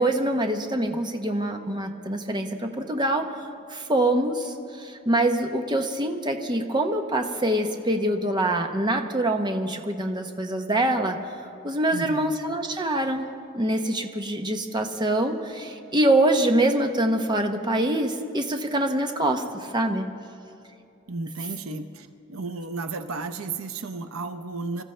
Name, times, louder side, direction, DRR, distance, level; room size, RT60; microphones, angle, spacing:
voice 1, 0.0-11.2 11.6-13.3 13.5-20.1, right 1 dB, 20° right, 4 dB, 0.9 m, -25 dB
voice 2, 11.9-12.4 21.1-24.8, right 3 dB, 85° right, 8 dB, 0.7 m, -33 dB
26.0 x 14.0 x 3.3 m, 2.6 s
head